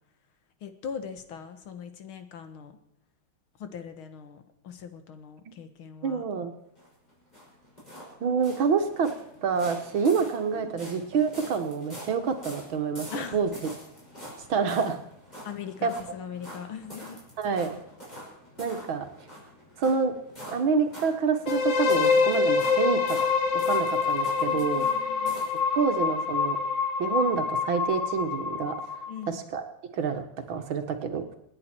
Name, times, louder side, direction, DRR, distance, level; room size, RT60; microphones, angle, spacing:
voice 1, 0.6-2.7 3.6-6.2 10.5-10.8 13.1-13.4 15.4-17.2 24.5-25.4 29.1-29.4, left 7 dB, 90° left, 8 dB, 2.3 m, -40 dB
voice 2, 6.0-6.5 8.2-9.1 9.4-13.5 14.5-15.0 15.8-15.9 17.4-17.8 18.6-19.0 19.8-20.1 20.5-23.2 23.5-24.8 25.7-26.6 27.0-28.7 29.3-29.6 29.9-31.2, right 5 dB, 75° right, 6 dB, 2.3 m, -27 dB
sound 1, 6.8-25.6, equal, 20° left, 6.3 m, -46 dB
sound 2, 21.5-29.3, left 5 dB, 65° left, 2.1 m, -26 dB
27.0 x 9.8 x 4.6 m, 0.77 s
omnidirectional pair, 2.2 m